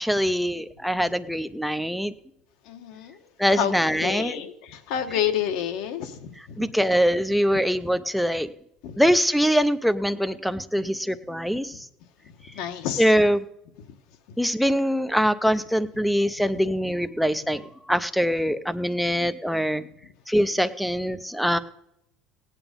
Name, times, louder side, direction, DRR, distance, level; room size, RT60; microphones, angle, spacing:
voice 1, 0.0-2.1 3.4-4.4 6.6-8.5 9.0-11.7 13.0-13.4 14.4-17.6 17.9-19.8 20.3-21.6, equal, ahead, 14 dB, 0.5 m, -23 dB
voice 2, 2.6-3.2 3.6-3.7 4.0-6.6 8.8-9.0 11.7-11.8 12.5-13.1 21.5-21.6, left 9 dB, 65° left, 8 dB, 1.3 m, -29 dB
17.0 x 9.0 x 5.2 m, 0.79 s
cardioid pair, 150°, 0 cm